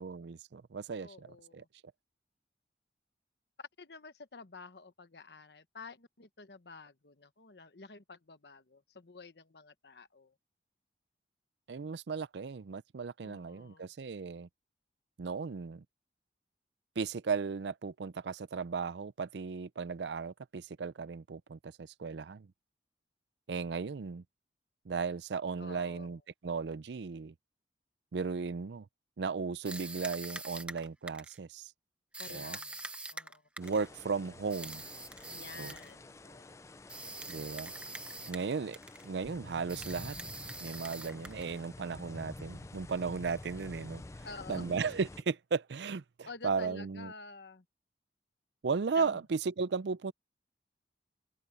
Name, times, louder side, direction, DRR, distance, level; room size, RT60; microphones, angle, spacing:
voice 1, 0.0-1.6 11.7-14.5 15.2-15.8 17.0-22.5 23.5-24.2 24.9-27.3 28.1-28.9 29.2-31.7 32.3-32.6 33.6-34.8 35.6-35.7 37.3-37.7 38.3-40.2 40.6-44.0 44.5-47.1 48.6-50.1, right 5 dB, 80° right, 0.5 m, -36 dB
voice 2, 1.0-1.7 3.6-10.3 13.2-13.9 25.6-26.2 32.2-33.4 35.3-36.6 44.2-44.7 46.3-47.6 48.9-49.2, left 4 dB, 70° left, 1.1 m, -50 dB
sound 1, 29.6-31.4 32.1-33.9 34.5-35.9 36.9-38.5 38.7-39.1 39.7-41.6, right 2 dB, 5° right, 0.9 m, -44 dB
sound 2, 33.6-45.2, left 2 dB, 15° left, 0.4 m, -49 dB
head